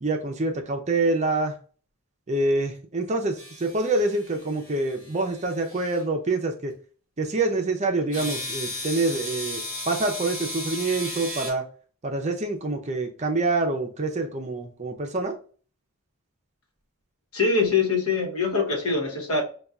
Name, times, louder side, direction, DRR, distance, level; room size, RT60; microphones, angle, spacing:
voice 1, 0.0-1.6 2.3-6.7 7.2-11.7 12.0-15.4, right 2 dB, 30° right, 0.5 m, -26 dB
sound 1, 3.4-6.0 8.1-11.5, left 1 dB, 20° left, 1.9 m, -35 dB
voice 2, 17.3-19.4, left 4 dB, 80° left, 1.0 m, -23 dB
5.4 x 2.3 x 2.4 m
head